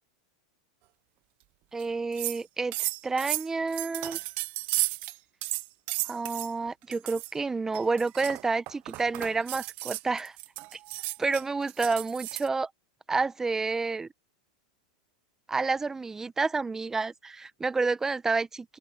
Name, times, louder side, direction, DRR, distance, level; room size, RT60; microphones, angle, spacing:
voice 1, 1.7-4.2 6.0-10.4 10.7-10.8 11.2-12.7 13.1-14.1 15.5-18.8, right 4 dB, 15° right, 1.1 m, -29 dB
sound 1, 1.8-1.9 2.1-2.4 2.7-5.2 5.4-6.5 6.9-7.3 7.7-12.5, right 21 dB, 50° right, 0.9 m, -33 dB
open air
hypercardioid pair, 110°, 4 cm